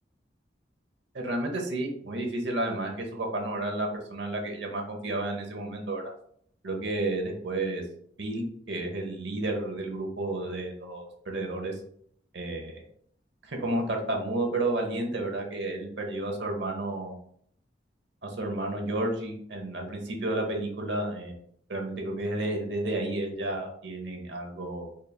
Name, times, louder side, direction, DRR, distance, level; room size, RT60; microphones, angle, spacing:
voice 1, 1.1-6.0 6.6-7.8 8.2-11.8 12.3-12.8 13.4-17.1 18.2-21.3 21.7-24.9, right 2 dB, 70° right, 2 dB, 0.9 m, -31 dB
4.2 x 3.3 x 2.3 m, 0.64 s
head